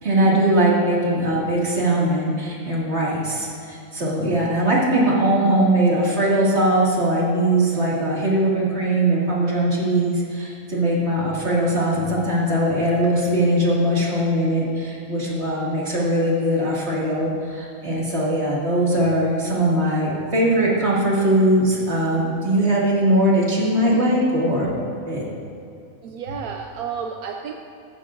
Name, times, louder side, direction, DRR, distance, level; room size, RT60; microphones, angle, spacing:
voice 1, 0.0-24.7 25.0-25.2, right 1 dB, 45° right, -5 dB, 2.6 m, -20 dB
voice 2, 26.0-27.5, right 7 dB, 80° right, 2 dB, 1.2 m, -31 dB
14.5 x 14.5 x 2.6 m, 2.6 s
omnidirectional pair, 1.6 m